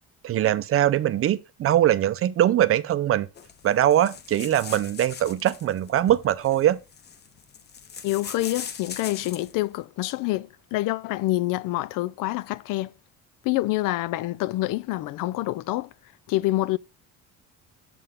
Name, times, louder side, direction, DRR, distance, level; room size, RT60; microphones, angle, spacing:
voice 1, 0.2-3.3 3.6-6.8, right 12 dB, 45° right, 0.5 m, -22 dB
sound 1, 3.4-9.6, left 7 dB, 30° left, 0.6 m, -41 dB
voice 2, 8.0-12.9 13.4-15.9 16.3-16.8, left 17 dB, 75° left, 0.5 m, -27 dB
7.8 x 6.8 x 3.6 m
cardioid pair, 155°, 33 cm